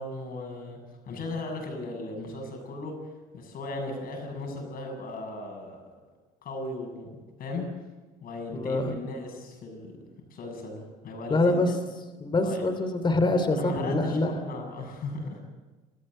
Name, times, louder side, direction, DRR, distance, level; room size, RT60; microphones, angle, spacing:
voice 1, 0.0-2.9 3.3-5.8 6.4-7.7 8.2-9.9 10.3-11.6 12.4-12.7 13.5-15.4, left 2 dB, 60° left, 3 dB, 7.2 m, -37 dB
voice 2, 8.5-8.9 11.3-11.7 12.2-14.3, left 2 dB, 30° left, 9 dB, 2.9 m, -25 dB
27.5 x 14.0 x 7.6 m, 1.2 s
cardioid pair, 110°, 17 cm